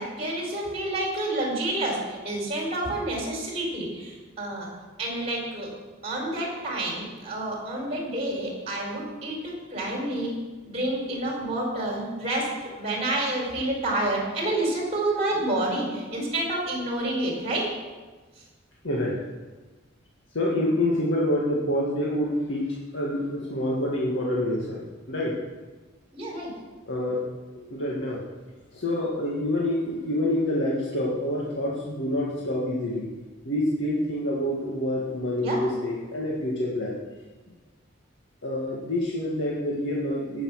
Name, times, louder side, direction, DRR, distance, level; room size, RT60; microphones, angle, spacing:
voice 1, 0.0-4.7 5.0-5.7 6.0-10.3 10.6-17.7 26.1-26.5 35.4-35.6, right 1 dB, 30° right, -1 dB, 4.3 m, -29 dB
voice 2, 18.8-19.2 20.3-25.4 26.9-27.2 27.5-28.2 28.7-33.1 33.4-37.0 38.4-40.4, left 1 dB, 70° left, -4 dB, 1.9 m, -27 dB
17.0 x 7.2 x 6.4 m, 1.3 s
head